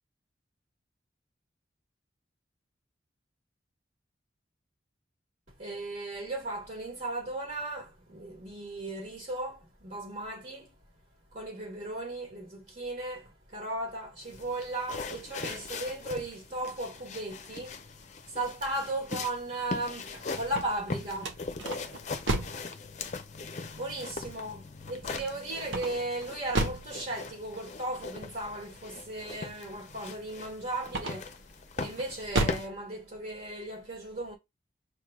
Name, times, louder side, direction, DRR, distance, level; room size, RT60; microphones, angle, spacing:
voice 1, 5.6-10.7 11.3-17.7 18.3-21.4 23.7-31.3 31.8-34.4, right 2 dB, 45° right, 1.4 m, -36 dB
sound 1, 14.2-32.7, left 4 dB, 40° left, 0.6 m, -41 dB
sound 2, 20.4-22.7 25.6-26.9 30.8-31.4 31.9-32.7, right 2 dB, 85° right, 1.1 m, -32 dB
6.5 x 3.1 x 2.3 m
head